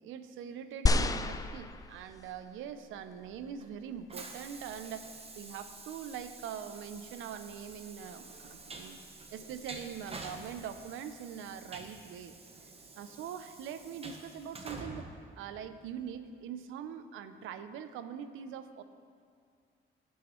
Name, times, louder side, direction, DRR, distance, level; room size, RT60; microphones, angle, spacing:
voice 1, 0.0-9.0 9.3-12.4 13.0-15.1 15.4-18.8, right 8 dB, 85° right, 11 dB, 0.5 m, -43 dB
sound 1, 0.9-2.4 3.1-3.2, left 2 dB, 20° left, 0.4 m, -29 dB
Train, 3.0-16.1, right 3 dB, 30° right, 1.0 m, -49 dB
16.0 x 6.2 x 3.1 m, 2.3 s
cardioid pair, 90°, 20 cm